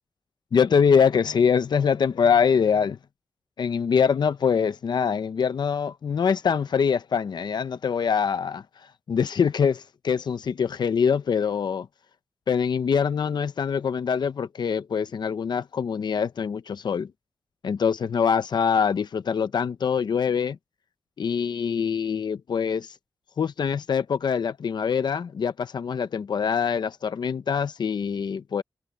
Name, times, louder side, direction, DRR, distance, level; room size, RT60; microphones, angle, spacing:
voice 1, 0.5-3.0 3.6-8.6 9.1-11.9 12.5-17.1 17.6-20.6 21.2-22.9 23.4-28.6, left 6 dB, 85° left, 0.7 m, -24 dB
wide cardioid pair, 140°, 7 cm